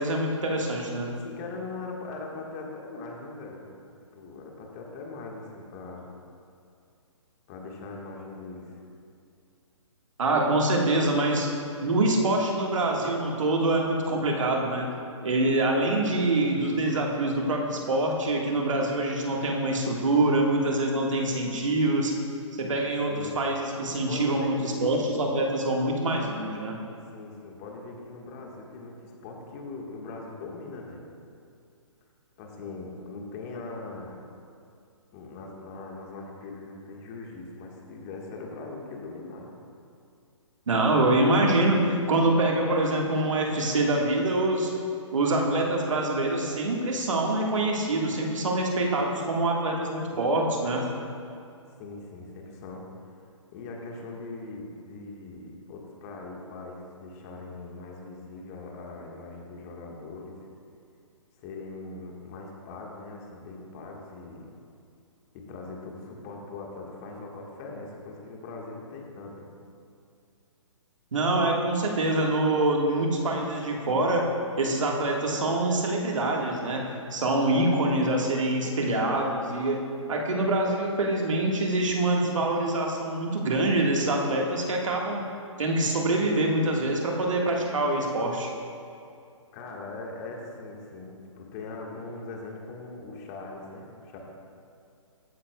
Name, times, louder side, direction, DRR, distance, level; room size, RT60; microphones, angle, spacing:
voice 1, 0.0-1.1 10.2-11.5 11.8-14.9 15.2-22.1 22.6-26.7 40.7-44.7 45.1-50.9 71.1-74.2 74.6-76.8 77.1-79.8 80.1-85.2 85.6-88.5, right 2 dB, 70° right, 0 dB, 1.7 m, -25 dB
voice 2, 1.2-3.7 4.1-6.1 7.5-8.8 23.1-23.4 23.9-25.0 27.1-31.0 32.4-34.2 35.1-39.5 51.8-52.8 53.5-60.4 61.4-64.5 65.3-69.5 89.5-94.2, left 3 dB, 30° left, 0 dB, 1.5 m, -40 dB
14.5 x 10.0 x 2.3 m, 2.5 s
hypercardioid pair, 140°, 17 cm